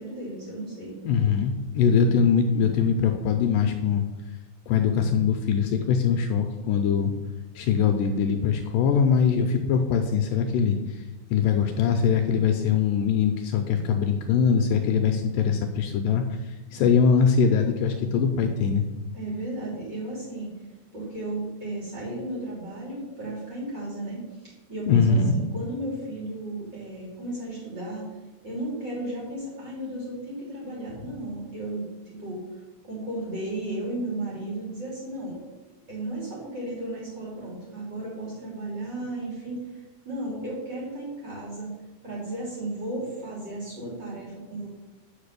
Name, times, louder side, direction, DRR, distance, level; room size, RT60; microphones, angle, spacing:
voice 1, 0.0-1.0 19.1-20.5 20.9-28.1 28.4-32.4 32.8-35.4 35.9-41.7 42.0-44.7, right 1 dB, 30° right, -5 dB, 3.4 m, -34 dB
voice 2, 1.0-4.1 4.7-7.1 7.6-11.0 11.3-18.9 24.9-25.4, left 6 dB, 80° left, 5 dB, 2.2 m, -22 dB
8.5 x 5.6 x 6.7 m, 1.1 s
omnidirectional pair, 4.2 m